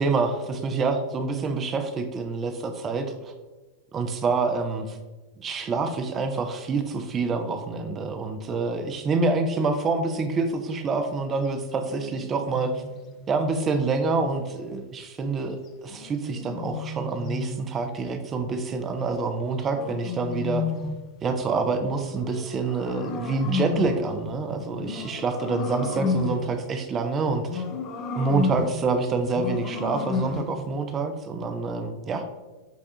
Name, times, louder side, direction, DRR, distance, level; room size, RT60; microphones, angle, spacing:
voice 1, 0.0-3.3 3.9-5.0 5.4-12.8 13.3-20.6 21.2-27.6 28.1-32.3, right 4 dB, 25° right, 6 dB, 0.4 m, -27 dB
sound 1, 11.9-14.3 15.9-17.7 19.1-21.1 22.1-24.1 24.8-26.5 27.5-28.9 29.3-30.6, left 5 dB, 35° left, 0.4 m, -32 dB
5.5 x 2.3 x 2.7 m, 1.2 s
figure-of-eight pair, 90°, 0 cm